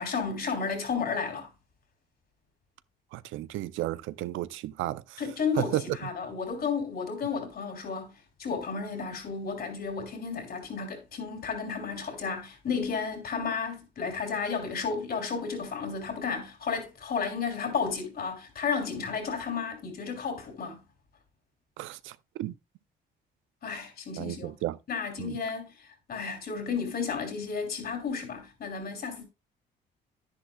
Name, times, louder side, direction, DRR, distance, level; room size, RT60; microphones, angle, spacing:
voice 1, 0.0-1.5 5.2-8.1 8.4-20.8 23.6-24.5 24.9-29.2, left 5 dB, 50° left, 3.3 m, -32 dB
voice 2, 3.1-5.2 5.6-6.0 21.8-22.5 24.2-24.8 25.2-25.4, right 15 dB, 80° right, 0.5 m, -33 dB
10.5 x 10.0 x 2.3 m
cardioid pair, 95°, 20 cm